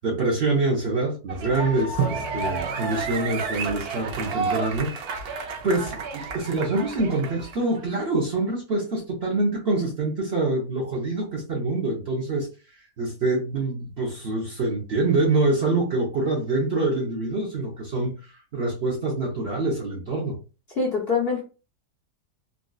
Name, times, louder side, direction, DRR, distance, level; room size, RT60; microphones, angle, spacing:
voice 1, 0.0-20.4, right 2 dB, 50° right, 0.8 m, -26 dB
sound 1, 1.3-7.9, right 5 dB, 70° right, 1.2 m, -30 dB
voice 2, 20.8-21.4, left 4 dB, 45° left, 0.9 m, -24 dB
3.9 x 2.4 x 2.3 m
omnidirectional pair, 1.7 m